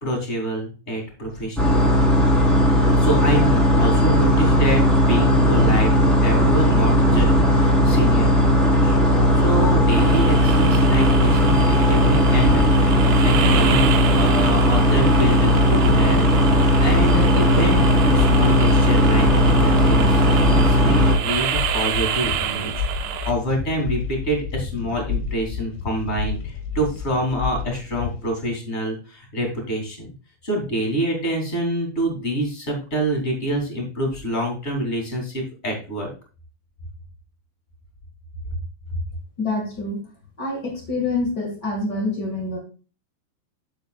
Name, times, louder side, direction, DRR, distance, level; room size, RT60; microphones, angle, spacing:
voice 1, 0.0-1.8 2.9-9.0 9.3-16.3 16.6-30.1 30.4-36.1, right 1 dB, 20° left, 1 dB, 2.2 m, -26 dB
sound 1, 1.6-21.1, equal, ahead, 2.1 m, -17 dB
sound 2, 9.9-23.3, right 10 dB, 75° right, 2.6 m, -29 dB
sound 3, 14.7-28.3, left 6 dB, 85° left, 3.9 m, -30 dB
voice 2, 39.4-40.0 40.4-42.6, left 2 dB, 70° left, 0 dB, 0.9 m, -26 dB
10.5 x 7.7 x 2.3 m, 0.35 s
omnidirectional pair, 5.3 m